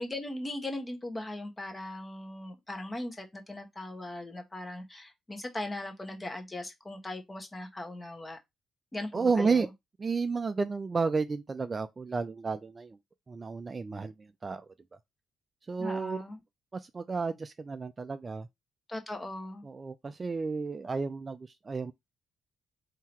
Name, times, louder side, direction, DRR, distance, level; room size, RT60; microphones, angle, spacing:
voice 1, 0.0-8.4 8.9-9.7 15.8-16.4 18.9-19.6, left 1 dB, 20° left, 1.2 m, -39 dB
voice 2, 9.1-9.7 10.0-13.0 13.3-14.7 15.7-16.2 16.7-18.5 19.6-21.9, right 4 dB, 30° right, 0.4 m, -32 dB
3.7 x 2.8 x 4.4 m
cardioid pair, 90°, 0 cm